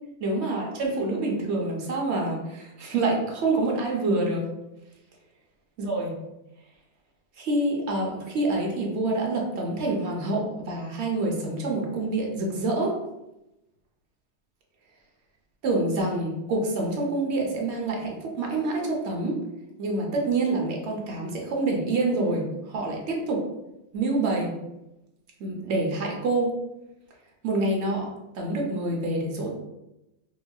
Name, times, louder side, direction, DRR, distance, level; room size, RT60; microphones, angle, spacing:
voice 1, 0.2-4.5 5.8-6.2 7.4-13.0 15.6-19.4 19.8-23.4 23.9-24.6 25.4-26.5 27.4-29.5, right 2 dB, 70° right, 0 dB, 0.9 m, -27 dB
3.9 x 2.1 x 2.2 m, 0.93 s
omnidirectional pair, 1.2 m